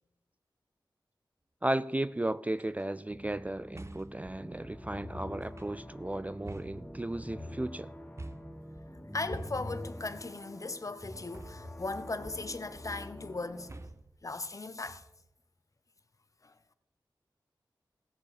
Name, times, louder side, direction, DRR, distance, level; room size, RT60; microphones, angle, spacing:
voice 1, 1.6-7.9, right 1 dB, 20° right, 0.3 m, -35 dB
sound 1, 2.5-2.8 3.7-4.3 5.4-6.0 6.5-7.4 8.2-8.7 9.3-9.9 11.3-11.9 12.2-12.7 13.7-14.2 14.9-15.4, right 2 dB, 35° right, 0.7 m, -47 dB
sound 2, 3.1-10.2, equal, ahead, 0.8 m, -48 dB
sound 3, 4.3-13.8, left 1 dB, 20° left, 2.2 m, -47 dB
voice 2, 9.1-13.8 14.2-15.0 16.4-16.5, left 3 dB, 40° left, 0.8 m, -38 dB
16.0 x 7.0 x 5.0 m
wide cardioid pair, 65°, 8 cm